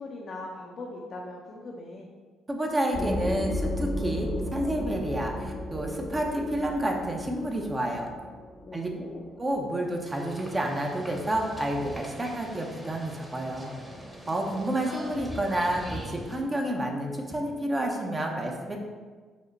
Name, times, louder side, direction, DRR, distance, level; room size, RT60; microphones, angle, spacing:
voice 1, 0.0-2.1 8.7-9.2, left 2 dB, 55° left, -2 dB, 0.5 m, -40 dB
voice 2, 2.5-8.1 8.7-8.9 9.4-13.7 14.3-18.8, right 1 dB, 25° right, 1 dB, 0.7 m, -29 dB
sound 1, 2.9-10.3, left 1 dB, 20° left, 0.7 m, -34 dB
sound 2, 10.1-16.4, equal, 10° right, 1.0 m, -42 dB
5.1 x 2.1 x 4.0 m, 1.5 s
supercardioid pair, 60°, 0 cm